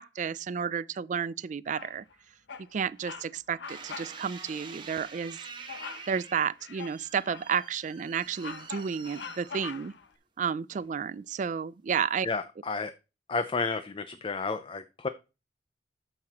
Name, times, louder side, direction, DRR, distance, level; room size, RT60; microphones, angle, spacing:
voice 1, 0.0-2.0 2.7-5.4 6.1-9.9 10.4-12.3, right 7 dB, 45° right, 0.3 m, -31 dB
Bird vocalization bird call bird song, 1.7-2.1 2.5-2.7 3.0-3.3 3.6-4.1 4.5-4.6 5.7-6.1 6.6-7.7 8.1-10.1, left 6 dB, 75° left, 0.8 m, -43 dB
sound 1, 3.7-10.1 10.7-11.2, right 5 dB, 25° right, 1.4 m, -47 dB
voice 2, 12.2-12.9 13.3-15.1, left 4 dB, 30° left, 0.5 m, -31 dB
9.4 x 6.6 x 2.9 m
head